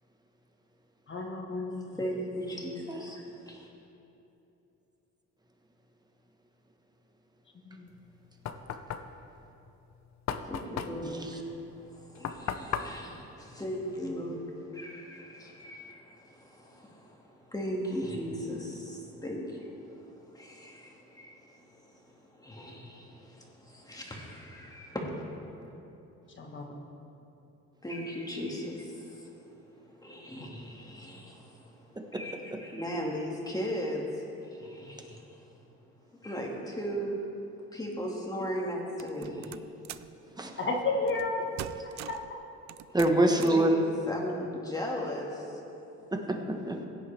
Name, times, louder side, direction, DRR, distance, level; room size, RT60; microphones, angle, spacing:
voice 1, 1.1-2.0 7.6-7.9 11.0-11.1 14.0-14.3 26.4-26.7 40.6-41.5 42.1-42.4, left 3 dB, 40° left, 1 dB, 1.5 m, -33 dB
voice 2, 1.7-3.7 10.4-25.8 27.8-32.4 32.6-35.5 36.2-37.2 37.7-39.6 42.9-43.0 43.3-43.7 44.1-45.6, equal, 10° left, -2 dB, 2.1 m, -38 dB
Knock, 7.9-14.4, left 8 dB, 65° left, 0.7 m, -38 dB
voice 3, 11.0-11.4 31.9-32.2 32.5-32.6 40.2-40.7 41.7-42.0 42.9-43.9 46.1-46.9, right 1 dB, 15° right, 3 dB, 1.2 m, -27 dB
sound 1, 39.0-40.2 41.1-41.3 41.6-42.3 42.7-43.7, right 12 dB, 65° right, 0.4 m, -43 dB
16.5 x 9.8 x 3.4 m, 2.9 s
cardioid pair, 90°, 30 cm